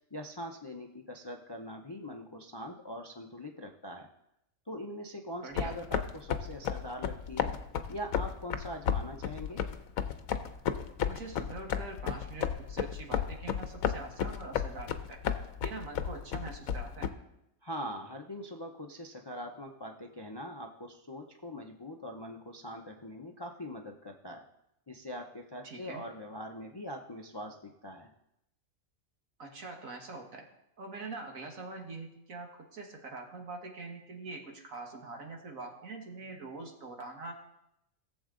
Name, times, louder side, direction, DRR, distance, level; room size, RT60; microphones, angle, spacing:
voice 1, 0.1-4.1 4.7-7.5 7.9-9.6 17.6-24.4 24.9-28.1, equal, 30° left, 3 dB, 0.5 m, -42 dB
voice 2, 5.4-5.8 11.1-15.2 15.6-17.1 25.6-26.0 29.4-30.5 30.8-37.3, right 3 dB, 70° right, 2 dB, 1.9 m, -44 dB
sound 1, 5.6-17.1, left 8 dB, 80° left, 1.1 m, -33 dB
17.5 x 7.3 x 3.8 m, 0.84 s
omnidirectional pair, 1.5 m